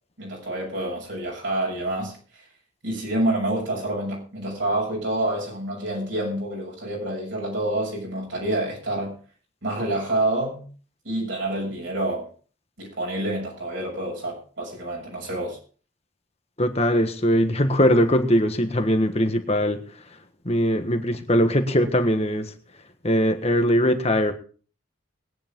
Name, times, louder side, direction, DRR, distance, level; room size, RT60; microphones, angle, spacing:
voice 1, 0.2-2.2 2.8-9.2 9.6-10.7 11.0-12.3 12.8-15.6, right 1 dB, 65° right, -2 dB, 7.0 m, -27 dB
voice 2, 16.6-19.8 20.4-22.5 23.0-24.3, equal, 30° left, 7 dB, 1.5 m, -21 dB
21.0 x 10.0 x 3.8 m, 0.40 s
head